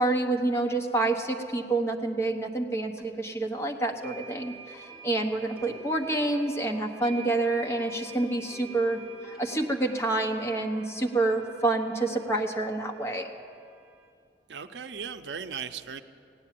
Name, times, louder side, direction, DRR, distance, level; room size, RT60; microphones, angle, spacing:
voice 1, 0.0-9.0 9.4-13.3, right 2 dB, 15° left, 1 dB, 1.0 m, -28 dB
sound 1, 3.0-3.1 4.0-14.1, right 5 dB, 5° right, 2.2 m, -48 dB
voice 2, 14.5-16.0, right 6 dB, 80° right, 9 dB, 0.6 m, -37 dB
16.5 x 9.7 x 7.5 m, 2.3 s
head